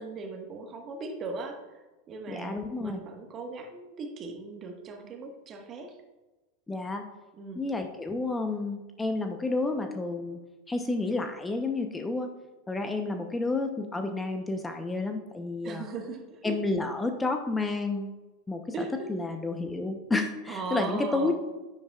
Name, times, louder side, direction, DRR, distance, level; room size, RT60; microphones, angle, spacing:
voice 1, 0.0-6.0 7.4-7.7 15.6-16.6 18.7-18.9 20.5-21.3, right 3 dB, 35° right, 4 dB, 1.5 m, -38 dB
voice 2, 2.3-3.0 6.7-7.0 7.6-10.4 10.7-12.3 12.7-15.8 16.4-18.1 18.5-21.3, left 3 dB, 15° left, 5 dB, 0.8 m, -30 dB
9.8 x 8.1 x 2.4 m, 1.1 s
hypercardioid pair, 95°, 0 cm